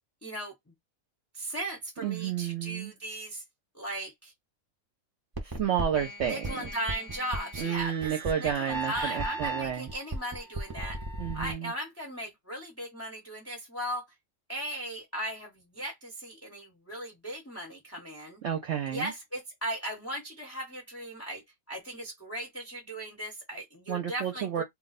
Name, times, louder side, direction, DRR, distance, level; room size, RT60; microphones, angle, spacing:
voice 1, 0.2-0.5 1.3-3.4 3.7-4.3 6.2-8.1 8.4-11.0 11.3-14.1 14.5-18.4 18.9-21.4 21.7-24.6, right 1 dB, 15° left, 0.7 m, -37 dB
voice 2, 2.0-2.9 5.4-6.7 7.6-9.9 11.2-11.7 18.4-19.1 23.9-24.6, right 9 dB, 60° right, 0.9 m, -31 dB
sound 1, 5.4-11.5, right 1 dB, 25° right, 0.4 m, -36 dB
2.4 x 2.3 x 4.0 m
omnidirectional pair, 1.5 m